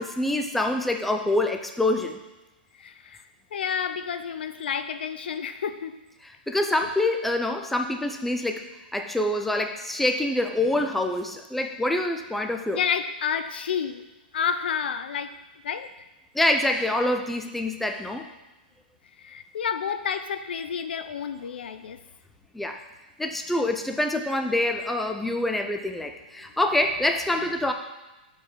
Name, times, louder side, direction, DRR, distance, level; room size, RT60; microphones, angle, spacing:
voice 1, 0.0-2.2 6.5-8.6 8.9-12.8 16.3-18.2 22.5-22.8 23.2-27.7, left 1 dB, 5° left, 5 dB, 0.4 m, -26 dB
voice 2, 2.8-3.2 3.5-6.0 12.7-14.1 14.3-15.3 15.6-15.9 19.2-22.0, left 7 dB, 80° left, 10 dB, 0.5 m, -30 dB
4.9 x 4.7 x 6.1 m, 1.1 s
hypercardioid pair, 140°, 5 cm